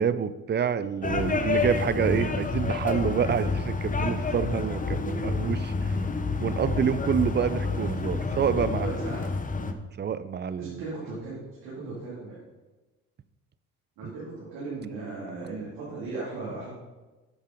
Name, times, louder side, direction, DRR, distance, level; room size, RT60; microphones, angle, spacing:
voice 1, 0.0-6.0 6.4-9.0 9.6-10.8 14.0-14.1, right 7 dB, 25° right, 14 dB, 0.5 m, -28 dB
sound 1, 1.0-9.7, left 4 dB, 20° left, 0.8 m, -29 dB
voice 2, 8.8-9.2 10.6-12.4 14.0-16.7, right 3 dB, 80° right, -7 dB, 2.7 m, -37 dB
8.6 x 5.5 x 5.1 m, 1.2 s
hypercardioid pair, 55°, 39 cm